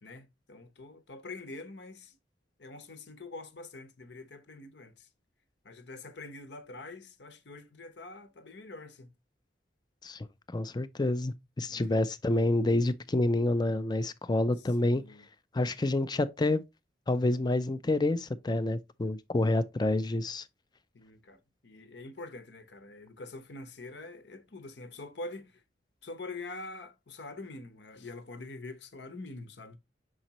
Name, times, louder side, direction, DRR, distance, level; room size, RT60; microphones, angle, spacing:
voice 1, 0.0-2.2 2.6-5.1 5.6-9.1 11.7-12.0 14.6-15.3 20.9-25.6 26.0-29.8, left 2 dB, 70° left, 0.9 m, -45 dB
voice 2, 10.0-15.0 15.5-16.6 17.1-20.4, left 2 dB, 25° left, 0.5 m, -28 dB
6.4 x 5.0 x 2.9 m
head